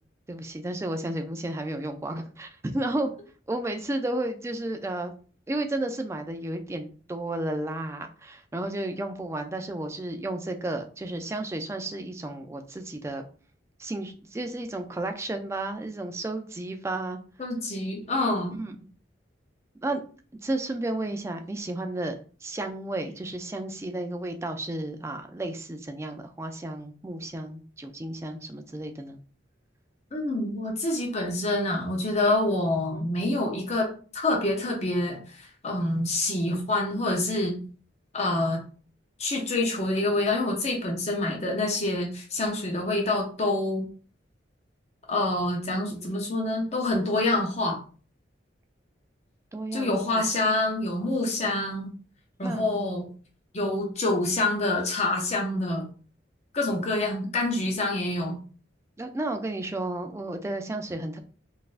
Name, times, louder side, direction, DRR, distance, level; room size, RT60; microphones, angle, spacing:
voice 1, 0.3-3.1 3.5-5.1 5.5-13.2 13.8-17.2 18.6-18.7 19.8-20.0 20.4-29.2 32.9-33.1 45.9-46.1 49.5-50.2 52.4-52.6 59.0-61.2, right 2 dB, 15° right, 6 dB, 0.3 m, -32 dB
voice 2, 17.4-18.6 30.1-37.6 38.1-38.6 39.2-43.9 45.1-47.8 49.7-51.9 52.4-53.1 53.5-55.8 56.5-58.4, left 2 dB, 35° left, -1 dB, 0.6 m, -27 dB
3.9 x 2.5 x 2.4 m, 0.40 s
head